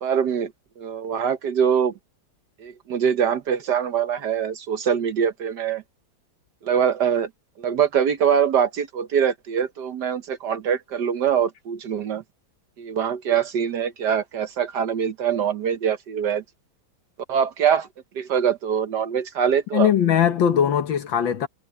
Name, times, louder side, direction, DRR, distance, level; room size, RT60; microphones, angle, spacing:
voice 1, 0.0-1.9 2.6-5.8 6.6-7.3 7.6-12.2 12.8-16.4 17.3-17.9 18.1-19.9, right 8 dB, 60° right, 1.5 m, -23 dB
voice 2, 19.7-21.5, left 9 dB, 70° left, 1.9 m, -20 dB
omnidirectional pair, 2.2 m